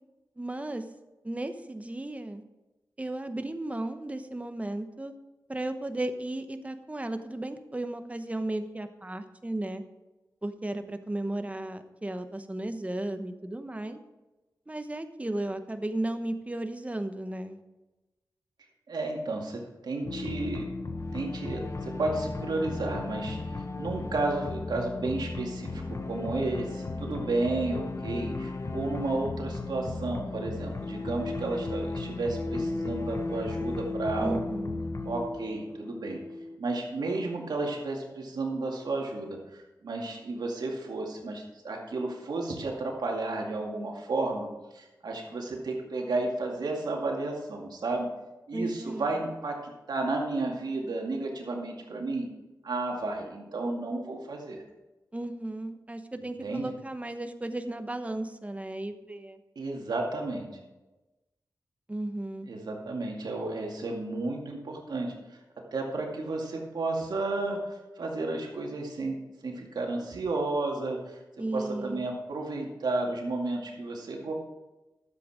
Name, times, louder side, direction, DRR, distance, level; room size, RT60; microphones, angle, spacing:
voice 1, 0.4-0.8 1.2-2.4 3.0-5.1 5.5-9.8 10.4-14.0 14.7-17.6 34.2-34.8 48.5-49.2 55.1-59.4 61.9-62.5 71.4-72.1, right 1 dB, 20° right, 8 dB, 1.0 m, -35 dB
voice 2, 18.9-20.7 21.1-23.4 23.8-34.4 35.1-36.2 36.6-48.1 48.5-52.3 52.6-54.6 56.2-56.7 59.6-60.5 62.5-65.4 65.7-71.2 71.5-74.3, right 2 dB, 80° right, 0 dB, 2.2 m, -32 dB
sound 1, 20.0-36.6, left 3 dB, 45° left, 1.0 m, -35 dB
12.0 x 7.8 x 4.9 m, 1.1 s
cardioid pair, 65°, 7 cm